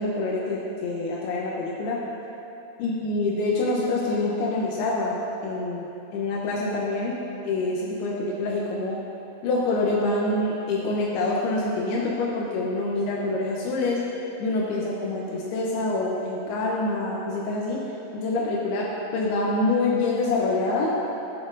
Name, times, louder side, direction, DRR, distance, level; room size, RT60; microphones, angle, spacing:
voice 1, 0.0-2.0 2.8-7.2 7.4-9.0 9.4-14.0 14.4-17.8 18.1-18.9 19.1-21.0, left 2 dB, 80° left, -4 dB, 2.7 m, -26 dB
15.0 x 8.2 x 2.6 m, 3.0 s
omnidirectional pair, 4.7 m